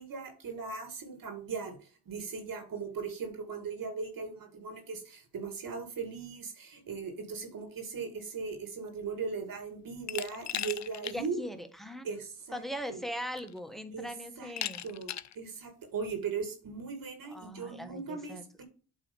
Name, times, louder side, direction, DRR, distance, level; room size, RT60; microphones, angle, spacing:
voice 1, 0.0-1.8 2.1-11.4 12.0-12.6 12.9-13.0 13.9-14.1 14.4-14.5 14.8-18.6, right 5 dB, 55° right, 6 dB, 2.5 m, -38 dB
Glass, 10.1-11.2 11.6-11.7 12.8-12.9 13.4-13.8 14.6-15.4, left 11 dB, 45° left, 0.6 m, -37 dB
voice 2, 11.0-12.0 12.5-14.8 17.3-18.6, equal, ahead, 8 dB, 1.5 m, -40 dB
8.4 x 3.5 x 5.4 m, 0.38 s
cardioid pair, 70°, 39 cm